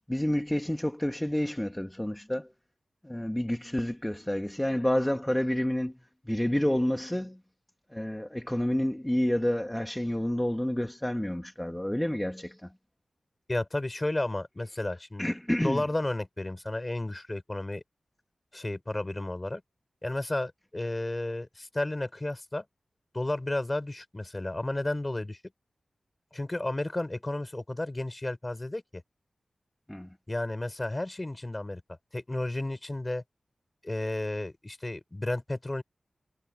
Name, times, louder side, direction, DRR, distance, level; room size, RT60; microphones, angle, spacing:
voice 1, 0.0-2.5 3.0-5.9 6.2-7.4 7.9-12.7 15.2-15.9 29.9-30.1, left 1 dB, 10° left, 1.8 m, -29 dB
voice 2, 13.5-15.3 15.6-17.8 18.5-19.6 20.0-22.6 23.1-25.4 26.3-29.0 30.3-33.2 33.8-35.8, left 2 dB, 25° left, 5.1 m, -32 dB
cardioid pair, 55°, 0 cm